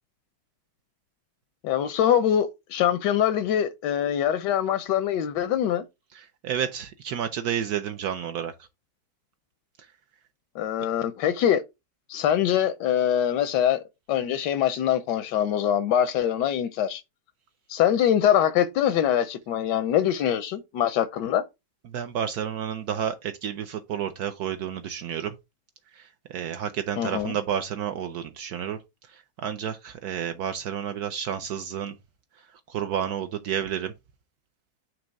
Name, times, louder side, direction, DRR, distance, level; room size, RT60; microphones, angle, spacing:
voice 1, 1.6-5.8 10.5-11.6 12.1-17.0 17.7-21.4 27.0-27.4, left 10 dB, 85° left, 1.2 m, -23 dB
voice 2, 6.1-8.5 21.9-25.4 26.0-28.8 29.1-31.9 32.7-33.9, right 9 dB, 70° right, 1.1 m, -30 dB
6.1 x 3.0 x 5.1 m
omnidirectional pair, 1.9 m